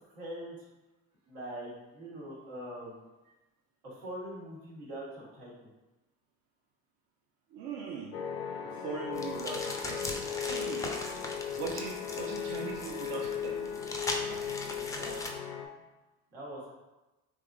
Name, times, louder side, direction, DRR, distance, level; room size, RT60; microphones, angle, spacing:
voice 1, 0.1-0.6 1.3-3.0 3.8-5.7 14.7-15.1 16.3-16.7, right 1 dB, 80° right, -5 dB, 1.2 m, -43 dB
voice 2, 7.5-8.1 8.6-11.0 11.3-13.7 14.3-14.4, right 6 dB, 60° right, -1 dB, 0.6 m, -41 dB
sound 1, 8.1-15.7, left 8 dB, 90° left, 0.5 m, -37 dB
sound 2, 9.2-15.3, left 2 dB, 10° left, 0.3 m, -39 dB
3.4 x 2.8 x 2.4 m, 1.1 s
hypercardioid pair, 65°, 42 cm